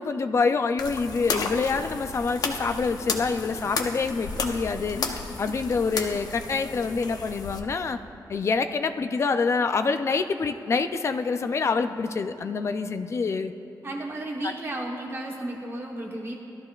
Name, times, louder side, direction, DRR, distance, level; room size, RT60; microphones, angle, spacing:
voice 1, 0.0-5.0 5.4-8.0 8.3-13.5, left 4 dB, 40° left, 9 dB, 0.4 m, -26 dB
sound 1, 0.8-7.6, left 4 dB, 60° left, 0.9 m, -33 dB
voice 2, 13.8-16.4, right 1 dB, 35° right, -1 dB, 1.1 m, -33 dB
18.5 x 13.0 x 2.4 m, 2.9 s
wide cardioid pair, 165°, 7 cm